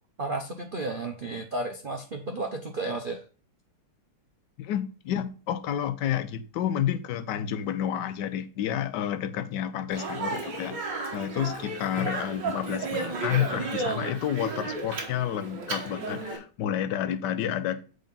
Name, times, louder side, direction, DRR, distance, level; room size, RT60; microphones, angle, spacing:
voice 1, 0.2-3.2, right 2 dB, 80° right, 0.4 m, -33 dB
voice 2, 4.6-17.8, left 10 dB, 65° left, 1.2 m, -30 dB
Speech, 9.9-16.4, right 3 dB, 60° right, 2.1 m, -33 dB
7.9 x 3.9 x 5.3 m
omnidirectional pair, 2.2 m